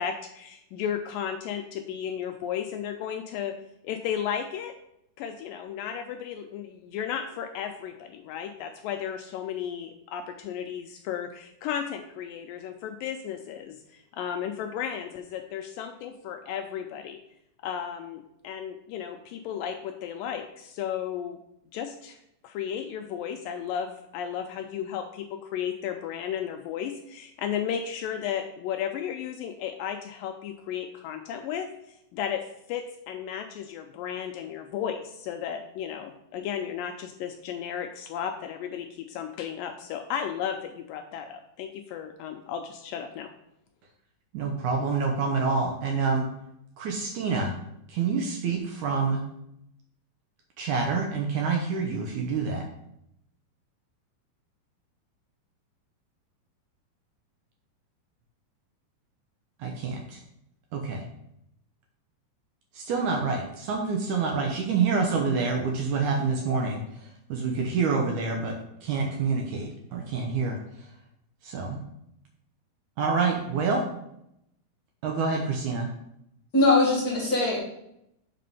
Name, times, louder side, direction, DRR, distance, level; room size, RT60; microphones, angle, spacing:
voice 1, 0.0-3.6 3.8-4.7 5.2-17.2 17.6-21.4 21.7-22.2 22.4-31.7 32.1-43.3, left 8 dB, 85° left, 5 dB, 2.0 m, -34 dB
voice 2, 44.3-46.3 46.8-47.5 47.9-49.2 50.6-52.7 59.6-60.2 60.7-61.1 62.7-70.6 71.4-71.8 73.0-73.9 75.0-75.9, right 4 dB, 75° right, 1 dB, 1.8 m, -27 dB
voice 3, 76.5-77.6, left 2 dB, 40° left, -4 dB, 1.4 m, -21 dB
7.4 x 4.1 x 5.4 m, 0.79 s
omnidirectional pair, 4.5 m